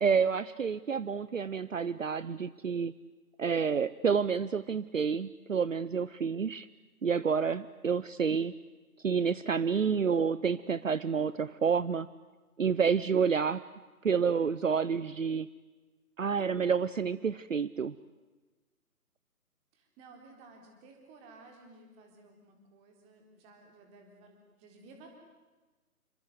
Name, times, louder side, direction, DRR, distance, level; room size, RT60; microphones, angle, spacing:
voice 1, 0.0-2.9 3.4-6.7 7.0-8.5 9.0-12.1 12.6-13.6 14.0-15.5 16.2-17.9, right 6 dB, 60° right, 16 dB, 0.9 m, -29 dB
voice 2, 19.7-25.1, right 3 dB, 15° right, 3 dB, 3.9 m, -55 dB
29.0 x 24.5 x 8.1 m, 1.3 s
figure-of-eight pair, 145°, 45 cm